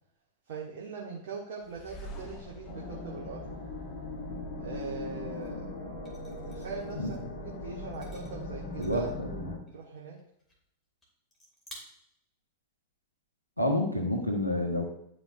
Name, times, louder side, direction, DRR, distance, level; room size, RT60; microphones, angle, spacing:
voice 1, 0.5-3.4 4.6-5.7 6.4-7.2 7.4-10.2, right 5 dB, 55° right, -3 dB, 1.4 m, -41 dB
sound 1, 1.6-4.6, equal, 30° left, 1.4 m, -47 dB
sound 2, 2.6-9.6, left 2 dB, 55° left, 1.5 m, -39 dB
sound 3, 5.4-5.5 6.0-7.3 7.8-9.3 9.7-9.9 10.2-10.7 11.0-11.1 11.3-11.7, left 1 dB, 10° left, 2.6 m, -54 dB
voice 2, 8.8-9.5 13.6-14.8, left 1 dB, 90° left, 3 dB, 1.0 m, -29 dB
11.0 x 4.9 x 2.5 m, 0.73 s
figure-of-eight pair, 90°, 0 cm